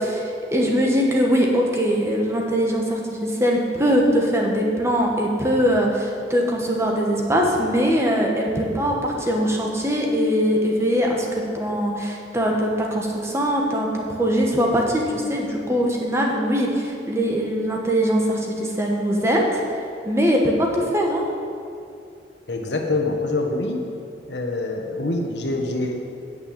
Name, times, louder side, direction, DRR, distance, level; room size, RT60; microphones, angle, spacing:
voice 1, 0.0-19.6 20.0-21.2, equal, 15° right, -1 dB, 1.3 m, -21 dB
voice 2, 22.5-23.9 24.3-25.9, left 2 dB, 75° left, 2 dB, 1.3 m, -25 dB
8.8 x 6.8 x 8.6 m, 2.5 s
head